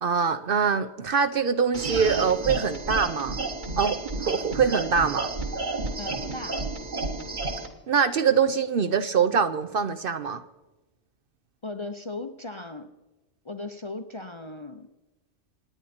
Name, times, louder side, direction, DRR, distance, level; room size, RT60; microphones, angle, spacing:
voice 1, 0.0-3.3 3.8-5.3 7.9-10.4, right 6 dB, 55° right, 10 dB, 0.7 m, -24 dB
sound 1, 1.7-7.7, right 3 dB, 40° right, 1.5 m, -31 dB
voice 2, 6.0-6.6 11.6-12.9 13.4-14.9, left 2 dB, 30° left, 7 dB, 0.6 m, -37 dB
27.0 x 9.8 x 4.3 m, 1.1 s
omnidirectional pair, 1.2 m